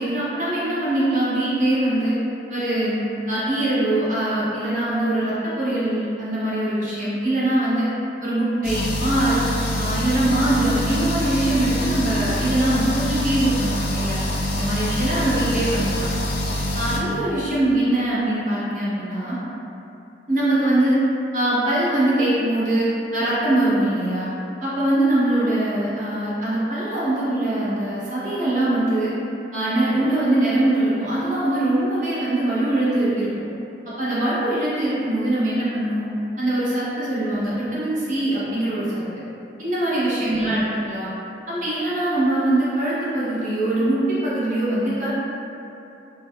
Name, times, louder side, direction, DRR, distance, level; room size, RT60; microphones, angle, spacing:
voice 1, 0.0-2.2 2.5-3.0 3.3-7.9 8.2-9.4 9.8-14.2 14.6-16.1 16.7-19.4 20.3-21.0 21.3-24.3 24.6-29.1 29.5-33.5 34.0-36.0 36.4-39.0 39.6-41.1 41.5-45.1, right 1 dB, 45° right, -10 dB, 0.6 m, -22 dB
sound 1, 8.6-17.0, left 1 dB, 60° left, 0.4 m, -25 dB
2.3 x 2.1 x 2.6 m, 2.8 s
head